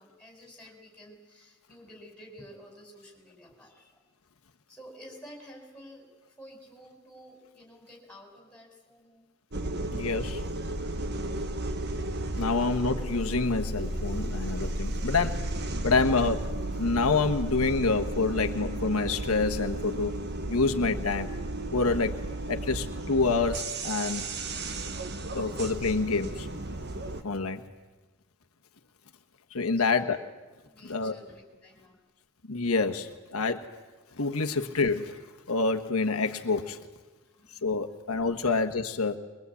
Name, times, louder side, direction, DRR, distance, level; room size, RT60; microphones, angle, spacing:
voice 1, 0.0-4.0 4.7-6.0 6.4-9.2 29.8-30.2 30.6-32.0 37.2-37.7 38.4-38.6, equal, 5° left, 1 dB, 4.9 m, -50 dB
sound 1, 9.5-27.2, right 1 dB, 50° right, 1.4 m, -33 dB
voice 2, 9.9-10.4 12.4-15.4 15.8-16.5 16.8-20.1 20.5-21.3 21.7-22.2 22.5-24.2 25.3-26.5 27.2-27.6 29.5-30.2 30.8-31.2 32.5-33.7 34.2-35.2 35.5-36.8 37.6-39.2, left 4 dB, 85° left, 6 dB, 1.3 m, -27 dB
22.5 x 22.5 x 8.4 m, 1.2 s
head